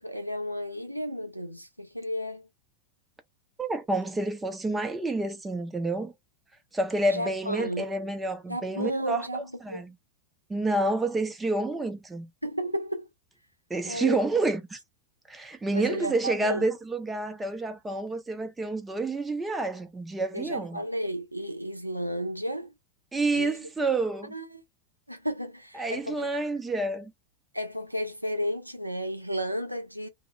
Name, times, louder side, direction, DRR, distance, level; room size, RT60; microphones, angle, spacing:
voice 1, 0.0-2.5 7.1-7.8 8.5-9.8 12.4-13.1 13.9-14.2 15.7-16.7 20.3-22.7 23.3-23.6 24.3-24.6 25.1-26.3 27.5-30.1, equal, 90° right, 0.5 m, -33 dB
voice 2, 3.6-6.1 6.7-9.9 10.5-12.3 13.7-14.8 15.3-20.8 23.1-24.3 25.8-27.1, right 2 dB, 10° right, 0.5 m, -29 dB
2.1 x 2.0 x 3.1 m
figure-of-eight pair, 90°, 0 cm